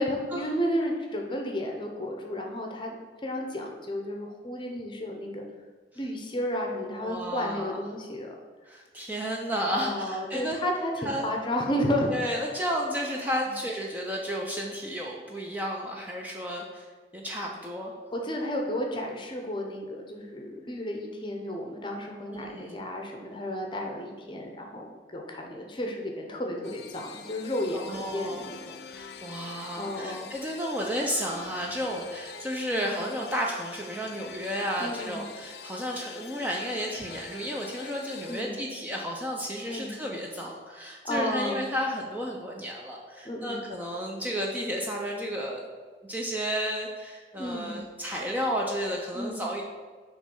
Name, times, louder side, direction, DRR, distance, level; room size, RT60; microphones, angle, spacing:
voice 1, 0.0-3.0 3.2-5.4 6.0-8.3 9.7-12.1 18.1-28.8 29.8-30.3 32.7-33.1 34.8-35.3 38.3-38.5 39.7-39.9 41.0-41.6 43.2-43.7 47.4-47.8 49.1-49.4, left 1 dB, 25° left, 1 dB, 0.7 m, -32 dB
voice 2, 6.9-7.7 8.7-10.6 11.0-11.3 12.1-16.9 17.1-17.9 22.3-22.8 27.7-28.5 28.9-45.7 46.0-49.6, equal, 10° right, -1 dB, 0.5 m, -32 dB
sound 1, 26.6-38.4, left 6 dB, 60° left, 0.4 m, -45 dB
6.5 x 3.2 x 5.3 m, 1.4 s
head